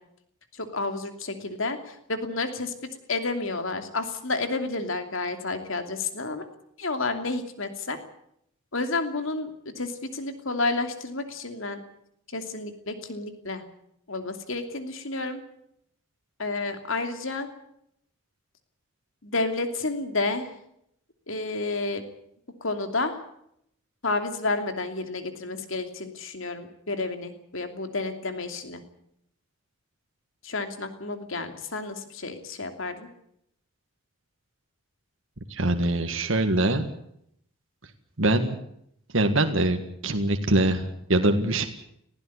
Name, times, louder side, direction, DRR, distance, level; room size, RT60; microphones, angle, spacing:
voice 1, 0.5-2.7 3.1-6.4 6.8-8.0 8.7-11.8 12.3-13.6 14.1-15.4 16.4-17.5 19.2-20.5 21.3-22.0 22.6-23.2 24.0-28.8 30.4-33.1, left 3 dB, 65° left, 7 dB, 2.8 m, -30 dB
voice 2, 35.5-36.9 38.2-38.6 39.1-41.7, right 1 dB, 65° right, 6 dB, 1.8 m, -23 dB
19.5 x 15.5 x 9.8 m, 0.74 s
head